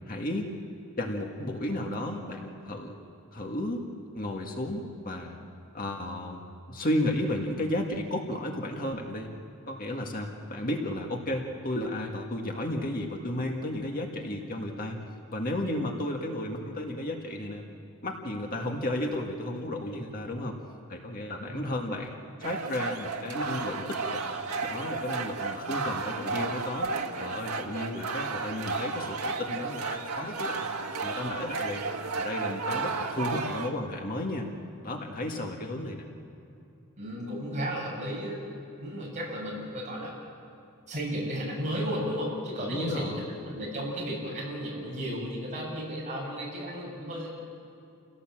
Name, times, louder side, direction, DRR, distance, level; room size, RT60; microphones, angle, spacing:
voice 1, 0.1-0.5 1.0-3.0 3.3-3.8 4.1-5.4 5.7-6.4 6.7-9.3 9.7-15.0 15.3-17.6 18.0-20.6 20.9-22.1 22.4-24.2 24.7-26.9 27.2-30.7 31.0-31.9 32.2-34.5 34.8-36.1 42.6-43.2, left 1 dB, 40° left, 1 dB, 1.8 m, -33 dB
voice 2, 21.4-21.9 35.7-35.9 37.0-38.4 38.8-40.2 40.9-47.3, equal, 35° right, -4 dB, 7.2 m, -34 dB
sound 1, 22.4-33.7, right 4 dB, 85° right, 1.6 m, -33 dB
28.5 x 17.0 x 7.6 m, 2.6 s
head